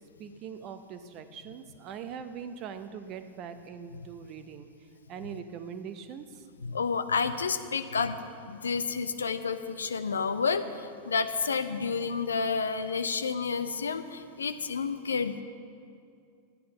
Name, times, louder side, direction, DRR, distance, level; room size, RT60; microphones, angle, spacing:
voice 1, 0.2-4.7 5.1-6.4, right 7 dB, 35° right, 10 dB, 0.7 m, -42 dB
voice 2, 6.6-8.2 8.5-10.6 11.1-15.4, left 5 dB, 70° left, 11 dB, 0.5 m, -30 dB
13.0 x 9.4 x 5.6 m, 2.4 s
figure-of-eight pair, 90°, 0 cm